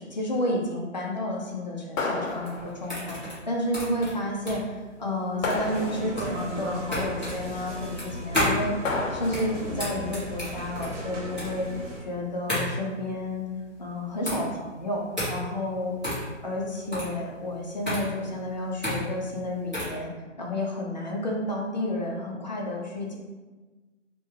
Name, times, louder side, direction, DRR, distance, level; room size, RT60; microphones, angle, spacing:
voice 1, 0.0-3.2 3.5-8.7 9.1-11.7 12.0-13.4 13.8-15.0 15.3-16.0 16.4-20.1 20.4-23.2, left 1 dB, 35° left, -2 dB, 0.5 m, -31 dB
sound 1, 2.0-3.0 5.4-6.4 8.8-9.7, left 3 dB, 85° left, 0.6 m, -31 dB
sound 2, 2.2-20.0, left 1 dB, ahead, 0.7 m, -33 dB
sound 3, 5.5-12.0, right 1 dB, 70° right, 0.9 m, -37 dB
3.3 x 2.2 x 3.1 m, 1.3 s
hypercardioid pair, 165°, 38 cm